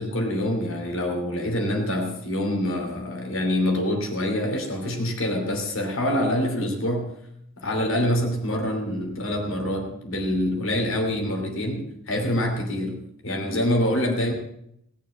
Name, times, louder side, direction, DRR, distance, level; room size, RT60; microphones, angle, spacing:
voice 1, 0.0-7.1 7.6-13.0 13.2-14.3, left 1 dB, 60° left, 2 dB, 2.9 m, -25 dB
19.0 x 6.9 x 7.1 m, 0.76 s
head